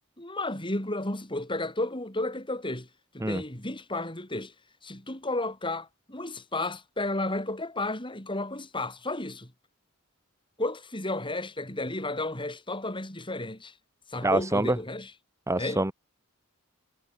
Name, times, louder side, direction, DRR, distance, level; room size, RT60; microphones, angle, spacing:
voice 1, 0.2-2.9 3.1-4.5 4.8-9.5 10.6-13.7 14.1-15.1 15.6-15.8, left 2 dB, 25° left, 5.8 m, -32 dB
voice 2, 14.2-14.8 15.5-15.9, right 2 dB, 15° right, 1.4 m, -25 dB
head